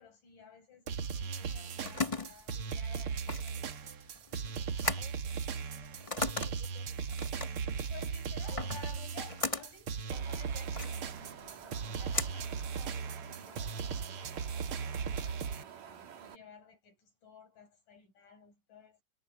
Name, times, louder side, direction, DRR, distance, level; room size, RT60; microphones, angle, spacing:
voice 1, 0.0-4.1 7.8-19.0, left 6 dB, 65° left, 9.5 m, -55 dB
sound 1, 0.9-15.6, right 6 dB, 55° right, 1.7 m, -37 dB
sound 2, 1.4-13.3, left 3 dB, 25° left, 0.7 m, -39 dB
voice 2, 4.9-7.0 8.4-8.5, left 8 dB, 90° left, 8.5 m, -61 dB
Wind, 10.1-16.4, right 8 dB, 70° right, 3.5 m, -50 dB
omnidirectional pair, 4.0 m